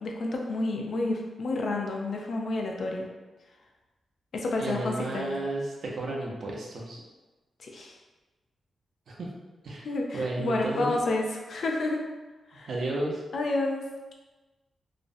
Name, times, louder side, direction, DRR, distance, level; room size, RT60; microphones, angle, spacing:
voice 1, 0.0-3.1 4.3-5.3 7.6-7.9 9.8-12.1 12.5-12.7 13.3-13.8, left 2 dB, 65° left, 0 dB, 0.4 m, -30 dB
voice 2, 4.6-7.0 9.1-9.3 9.6-9.9 10.1-11.0 12.5-13.2, right 2 dB, 65° right, -2 dB, 0.5 m, -32 dB
2.4 x 2.0 x 2.5 m, 1.2 s
wide cardioid pair, 110°, 0 cm